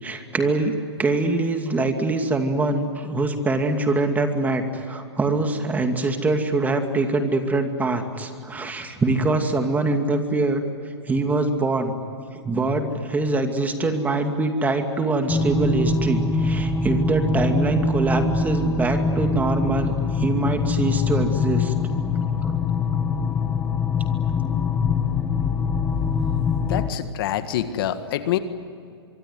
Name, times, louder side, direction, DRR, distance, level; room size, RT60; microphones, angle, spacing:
voice 1, 0.0-10.6 11.1-11.9 12.4-21.7 22.4-22.6, right 2 dB, 10° right, 6 dB, 2.4 m, -23 dB
sound 1, 15.3-26.9, left 4 dB, 10° left, 1.4 m, -23 dB
voice 2, 26.6-28.4, left 11 dB, 55° left, 10 dB, 1.8 m, -26 dB
25.5 x 23.0 x 9.7 m, 2.4 s
hypercardioid pair, 135°, 14 cm